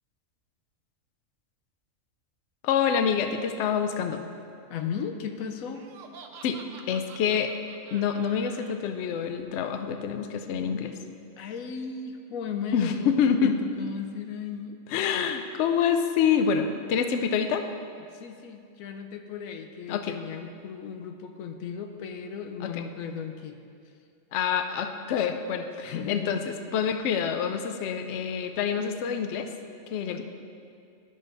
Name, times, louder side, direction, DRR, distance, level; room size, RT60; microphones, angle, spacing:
voice 1, 2.6-4.2 6.4-6.6 6.9-7.5 7.9-10.9 12.7-13.5 14.9-17.7 19.9-20.2 22.6-22.8 24.3-26.4 26.7-29.5 29.9-30.2, left 7 dB, 65° left, 7 dB, 0.8 m, -26 dB
voice 2, 4.7-5.9 11.4-14.8 18.1-23.6 25.8-26.3 30.1-30.2, left 6 dB, 90° left, 6 dB, 1.0 m, -36 dB
Laughter, 5.7-8.8, right 5 dB, 70° right, 0.9 m, -48 dB
11.5 x 4.0 x 5.1 m, 2.4 s
omnidirectional pair, 1.4 m